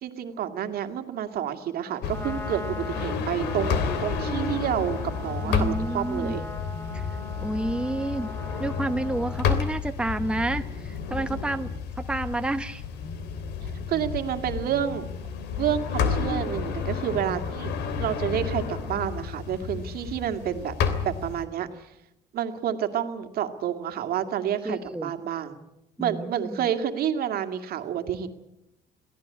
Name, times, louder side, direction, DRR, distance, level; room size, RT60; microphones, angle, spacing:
voice 1, 0.0-6.4 13.9-15.1 15.6-17.7 18.0-20.8 21.0-21.9 22.3-25.6 26.0-28.3, right 9 dB, 65° right, 6 dB, 2.3 m, -29 dB
Trumpet, 1.9-9.5, left 2 dB, 15° left, 2.5 m, -40 dB
sound 1, 2.0-21.4, left 5 dB, 80° left, 3.0 m, -31 dB
voice 2, 5.4-6.4 6.9-7.1 7.4-8.3 8.6-12.8 17.2-17.4 24.6-25.1 26.0-26.7, right 1 dB, 5° right, 8 dB, 1.0 m, -30 dB
22.5 x 16.5 x 9.7 m, 0.89 s
cardioid pair, 110°, 17 cm